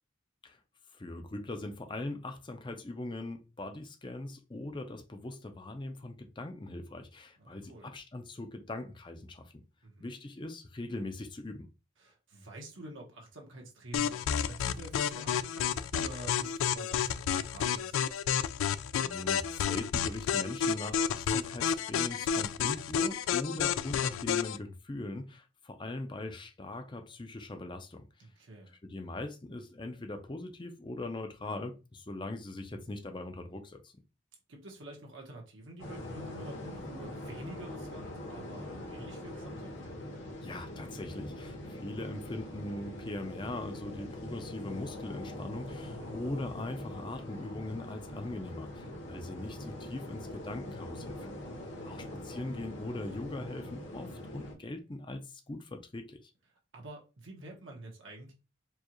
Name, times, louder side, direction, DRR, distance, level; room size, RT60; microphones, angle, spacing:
voice 1, 0.9-9.6 10.0-11.7 19.0-28.1 28.8-33.9 40.4-51.4 51.8-56.3, left 2 dB, 25° left, 0.5 m, -41 dB
voice 2, 7.4-7.9 9.8-10.1 12.0-18.5 28.2-28.7 32.7-32.8 34.5-39.8 42.1-42.2 45.9-46.2 51.7-52.1 56.7-58.3, right 1 dB, 70° right, 1.2 m, -48 dB
sound 1, 13.9-24.6, left 8 dB, 85° left, 0.3 m, -31 dB
sound 2, 35.8-54.6, left 1 dB, 65° left, 1.1 m, -43 dB
4.6 x 2.3 x 3.0 m
head